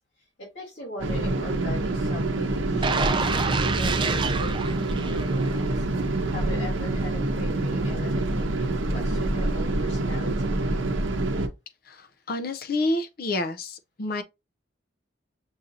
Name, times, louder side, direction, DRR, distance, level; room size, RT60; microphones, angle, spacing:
voice 1, 0.4-10.5, left 1 dB, 65° left, 2.8 m, -41 dB
sound 1, 1.0-11.5, right 2 dB, 90° right, 0.7 m, -26 dB
sound 2, 2.8-5.8 6.2-6.3, right 4 dB, 25° right, 0.4 m, -27 dB
voice 2, 11.9-14.2, left 2 dB, 50° left, 0.5 m, -29 dB
6.3 x 2.6 x 2.7 m
head